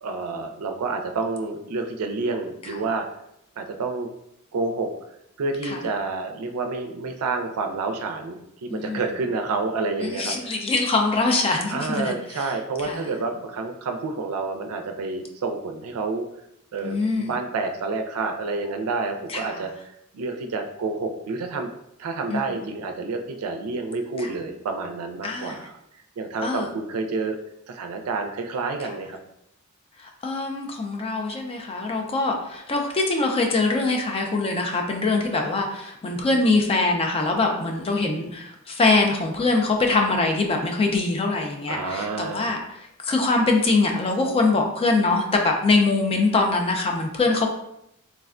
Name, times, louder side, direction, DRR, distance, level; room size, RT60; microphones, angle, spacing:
voice 1, 0.0-3.1 3.6-4.1 4.5-4.9 5.4-10.6 11.7-16.2 16.7-19.7 20.1-21.7 22.0-25.7 26.2-27.4 27.7-29.2 41.7-42.6, right 3 dB, 85° right, 4 dB, 0.4 m, -29 dB
voice 2, 8.7-9.1 10.0-12.5 12.8-13.1 16.8-17.3 19.3-19.6 22.3-22.6 25.2-25.6 26.4-26.7 30.0-47.5, left 3 dB, 25° left, 2 dB, 0.4 m, -23 dB
3.3 x 2.1 x 2.4 m, 0.78 s
head